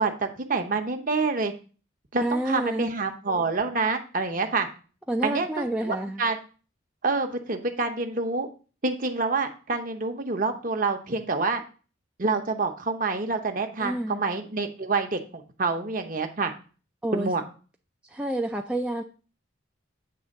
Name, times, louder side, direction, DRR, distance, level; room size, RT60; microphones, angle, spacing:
voice 1, 0.0-1.5 2.1-4.7 5.2-6.4 7.0-8.5 8.8-11.6 12.2-16.5 17.1-17.4, right 3 dB, 40° right, 0.9 m, -27 dB
voice 2, 2.2-2.9 5.1-6.2 13.8-14.2 17.0-17.3 18.0-19.0, right 1 dB, 5° right, 0.3 m, -29 dB
8.6 x 3.4 x 6.5 m
head